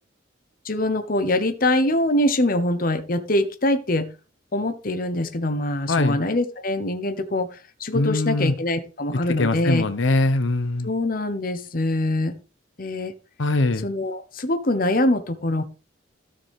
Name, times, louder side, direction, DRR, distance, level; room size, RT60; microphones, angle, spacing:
voice 1, 0.6-4.1 4.5-7.5 7.8-9.8 10.8-12.3 12.8-13.1 13.8-15.6, left 1 dB, 45° left, 1.0 m, -23 dB
voice 2, 5.9-6.2 7.9-8.5 9.1-10.9 13.4-13.9, left 2 dB, 80° left, 0.9 m, -22 dB
13.0 x 6.9 x 3.6 m
head